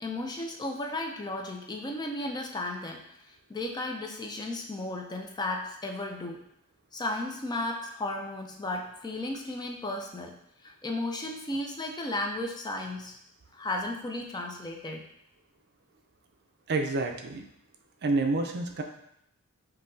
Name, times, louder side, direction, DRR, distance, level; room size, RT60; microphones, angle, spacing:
voice 1, 0.0-6.4 6.9-10.4 10.6-13.2 13.5-15.0, left 2 dB, 20° left, 2 dB, 0.4 m, -34 dB
voice 2, 16.7-17.4 18.0-18.8, right 3 dB, 50° right, 4 dB, 0.4 m, -28 dB
5.5 x 2.7 x 2.6 m, 0.76 s
head